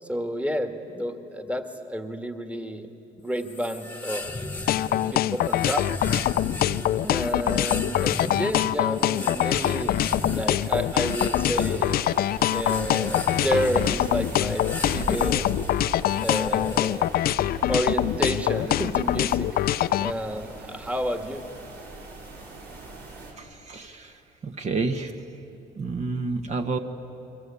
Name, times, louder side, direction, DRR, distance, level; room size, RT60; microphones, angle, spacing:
voice 1, 0.0-2.9 3.2-4.3 4.9-5.9 7.0-9.9 10.3-12.1 12.5-15.5 16.2-17.1 17.7-19.5 20.0-21.4, equal, 10° right, 6 dB, 1.8 m, -30 dB
sound 1, 3.4-17.2, left 2 dB, 10° left, 1.6 m, -36 dB
sound 2, 4.7-20.1, left 13 dB, 65° left, 0.6 m, -24 dB
sound 3, 9.3-23.3, right 2 dB, 70° right, 6.9 m, -40 dB
voice 2, 23.4-25.2 25.7-26.8, right 3 dB, 40° right, 6 dB, 1.5 m, -30 dB
29.5 x 23.5 x 8.5 m, 3.0 s
cardioid pair, 110°, 17 cm